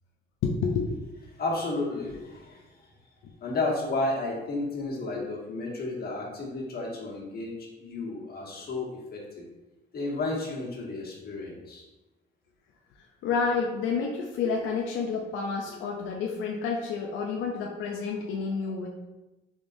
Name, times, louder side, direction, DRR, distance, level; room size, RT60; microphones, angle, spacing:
voice 1, 0.4-0.9 2.1-2.2 5.2-5.3 13.2-18.9, left 5 dB, 90° left, 0 dB, 0.5 m, -29 dB
voice 2, 1.4-2.7 3.4-9.4 9.9-11.8, left 2 dB, 50° left, -4 dB, 1.3 m, -32 dB
3.8 x 3.6 x 2.6 m, 1.1 s
cardioid pair, 90°, 20 cm